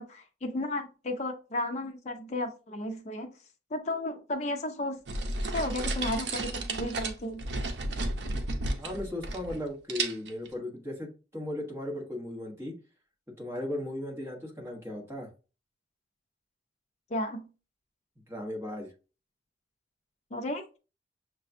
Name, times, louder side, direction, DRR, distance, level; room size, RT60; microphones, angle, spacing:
voice 1, 0.0-3.3 3.7-5.0 5.5-7.4 17.1-17.5 20.3-20.8, left 1 dB, 40° left, 3 dB, 0.6 m, -33 dB
sound 1, 5.1-9.6 9.9-10.5, right 2 dB, 75° right, 0.6 m, -33 dB
voice 2, 8.8-12.7 13.4-15.3 18.3-18.9, left 1 dB, 15° right, -1 dB, 1.2 m, -36 dB
6.5 x 2.3 x 2.6 m, 0.33 s
head